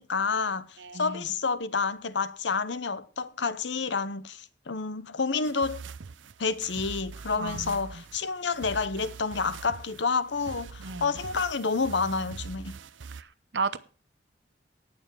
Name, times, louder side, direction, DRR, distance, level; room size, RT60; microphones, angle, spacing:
voice 1, 0.0-5.8 6.4-12.8, left 4 dB, 70° left, 0.9 m, -29 dB
voice 2, 0.8-1.3 7.4-8.0 10.8-11.1 13.2-13.8, right 4 dB, 65° right, 0.9 m, -34 dB
sound 1, 5.4-13.2, right 5 dB, 85° right, 0.6 m, -43 dB
18.0 x 7.2 x 4.6 m
head